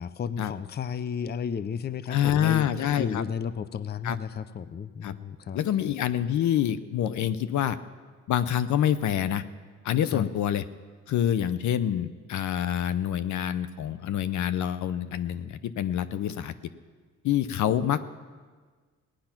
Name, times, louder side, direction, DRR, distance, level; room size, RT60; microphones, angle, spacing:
voice 1, 0.0-5.6 10.0-10.3, left 7 dB, 35° left, 15 dB, 0.6 m, -33 dB
voice 2, 2.1-3.2 4.0-4.2 5.0-5.1 5.5-7.8 8.3-9.4 9.8-10.6 11.1-16.5 17.2-18.0, left 10 dB, 70° left, 14 dB, 0.7 m, -26 dB
17.5 x 10.0 x 5.9 m, 1.5 s
cardioid pair, 90°, 30 cm